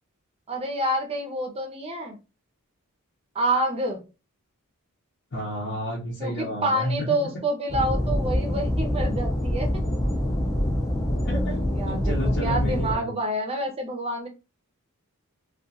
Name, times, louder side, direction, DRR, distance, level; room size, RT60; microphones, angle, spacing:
voice 1, 0.5-2.2 3.3-4.0 6.2-9.7 11.7-14.3, right 1 dB, 25° right, 3 dB, 0.6 m, -28 dB
voice 2, 5.3-7.1 11.3-13.1, equal, 50° left, -4 dB, 0.7 m, -31 dB
sound 1, 7.7-12.9, left 1 dB, 15° left, 0.4 m, -25 dB
2.4 x 2.3 x 2.6 m, 0.29 s
head